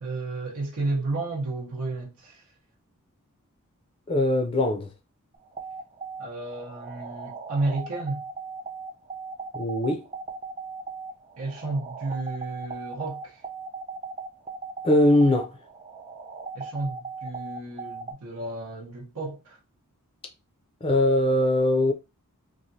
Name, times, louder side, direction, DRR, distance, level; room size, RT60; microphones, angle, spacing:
voice 1, 0.0-2.4 6.2-8.2 11.4-13.4 16.5-19.6, right 2 dB, 85° right, 0.9 m, -32 dB
voice 2, 4.1-4.9 9.5-10.0 14.8-15.5 20.8-21.9, left 1 dB, 25° left, 0.4 m, -21 dB
sound 1, 5.3-18.1, right 5 dB, 30° right, 0.5 m, -38 dB
3.1 x 2.4 x 2.6 m
head